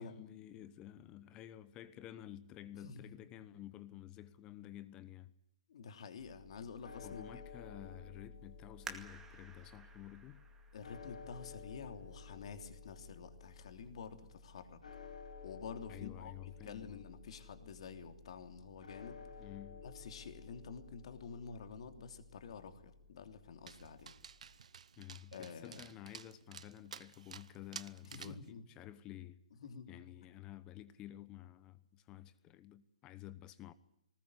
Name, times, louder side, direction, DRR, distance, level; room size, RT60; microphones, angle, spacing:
voice 1, 0.0-5.3 7.0-10.4 15.9-17.0 19.4-19.9 25.0-29.4 29.9-33.7, left 12 dB, 20° left, 1.0 m, -51 dB
voice 2, 5.7-7.2 10.7-14.8 15.4-19.2 19.8-24.1 25.3-25.8 28.0-28.6 29.6-29.9, left 5 dB, 55° left, 3.2 m, -49 dB
sound 1, 6.2-24.6, left 5 dB, 85° left, 6.1 m, -54 dB
sound 2, 8.8-12.2 12.8-12.9 13.6-13.9 14.3-14.4, right 5 dB, 10° right, 2.1 m, -53 dB
Dog, 23.7-28.5, right 7 dB, 65° right, 1.1 m, -52 dB
20.0 x 20.0 x 9.9 m
hypercardioid pair, 155°, 4 cm